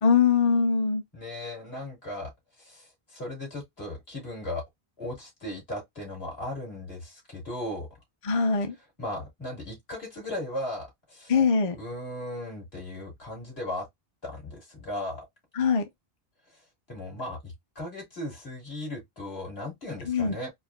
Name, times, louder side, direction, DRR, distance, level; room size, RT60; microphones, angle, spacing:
voice 1, 0.0-1.0 8.2-8.7 11.3-11.8 15.6-15.8 20.0-20.4, left 5 dB, 40° left, 0.5 m, -22 dB
voice 2, 1.1-2.3 2.6-4.6 5.0-7.9 9.0-11.3 11.7-13.9 14.2-15.3 16.9-20.5, left 1 dB, 75° left, 2.6 m, -37 dB
4.4 x 2.5 x 2.3 m
omnidirectional pair, 1.1 m